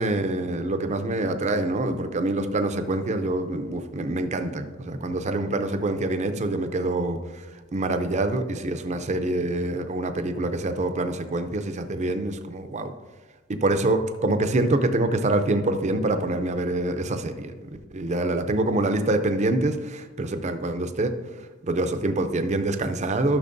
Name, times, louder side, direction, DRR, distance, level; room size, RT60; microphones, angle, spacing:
voice 1, 0.0-12.9 13.5-21.2 21.6-23.4, right 2 dB, 35° right, 8 dB, 0.5 m, -26 dB
12.0 x 6.1 x 2.6 m, 1.3 s
head